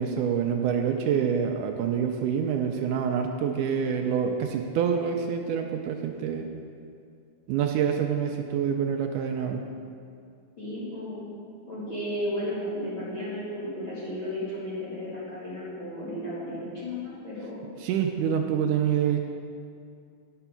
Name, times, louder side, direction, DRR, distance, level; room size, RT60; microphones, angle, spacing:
voice 1, 0.0-6.5 7.5-9.6 17.8-19.2, right 7 dB, 80° right, 3 dB, 1.9 m, -26 dB
voice 2, 10.6-11.3 11.7-17.7, left 1 dB, 40° left, -11 dB, 2.5 m, -34 dB
10.0 x 6.9 x 5.7 m, 2.4 s
omnidirectional pair, 4.0 m